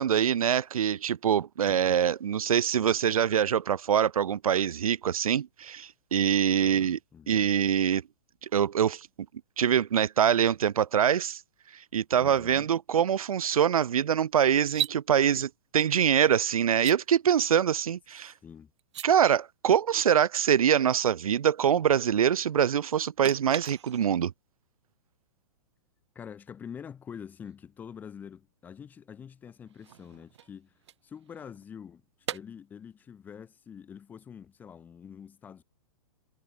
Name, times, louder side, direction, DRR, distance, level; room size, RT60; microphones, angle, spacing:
voice 1, 0.0-7.0 7.3-8.0 8.5-9.1 9.6-11.4 11.7-18.3 19.0-24.3, right 9 dB, 80° right, 2.1 m, -24 dB
voice 2, 6.6-7.6 12.2-12.7 18.4-18.7 26.1-35.6, left 7 dB, 10° left, 2.6 m, -46 dB
sound 1, 14.6-15.0 16.7-17.0 18.8-19.1 23.2-24.3 27.4-27.5 29.5-31.6 32.2-32.4, right 11 dB, 50° right, 4.2 m, -37 dB
hypercardioid pair, 175°, 18 cm